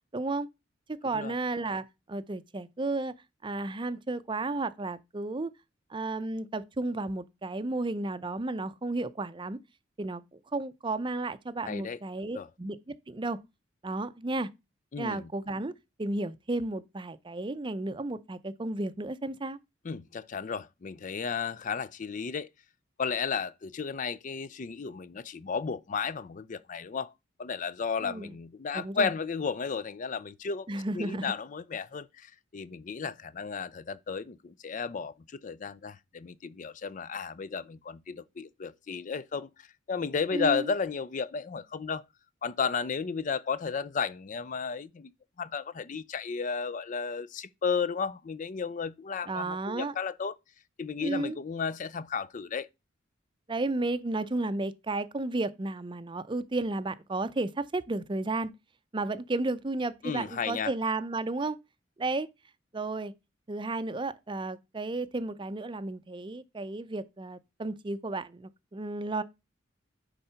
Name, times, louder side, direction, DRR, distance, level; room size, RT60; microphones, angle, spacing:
voice 1, 0.1-0.5 1.0-3.1 3.4-5.5 5.9-9.6 10.0-13.4 13.8-14.5 15.0-15.7 16.0-19.6 28.0-28.3 28.7-29.1 30.7-31.3 40.3-40.7 49.3-49.9 51.0-51.4 53.5-58.5 58.9-61.6 62.0-62.3 62.7-63.1 63.5-69.2, right 2 dB, 25° right, 0.5 m, -33 dB
voice 2, 11.7-12.0 12.3-12.5 14.9-15.3 19.8-22.5 23.0-27.1 27.4-35.1 35.4-42.0 42.4-45.1 45.4-50.4 50.8-52.7 60.0-60.7, left 5 dB, 45° left, 0.4 m, -33 dB
10.0 x 3.8 x 5.7 m
head